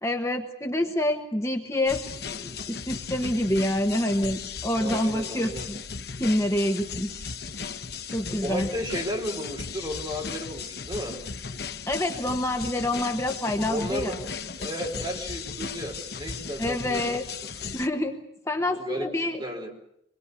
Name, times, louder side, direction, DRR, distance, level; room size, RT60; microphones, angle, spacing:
voice 1, 0.0-2.0 2.3-5.8 6.2-7.3 8.1-8.7 11.9-14.1 16.6-17.2 17.7-19.4, left 1 dB, 15° left, 4 dB, 1.2 m, -27 dB
sound 1, 1.9-17.9, left 5 dB, 60° left, 1.0 m, -36 dB
voice 2, 4.8-5.7 8.4-11.2 13.7-14.2 14.6-17.5 18.8-19.7, equal, 25° right, 1 dB, 4.7 m, -34 dB
26.5 x 21.5 x 8.3 m, 0.76 s
head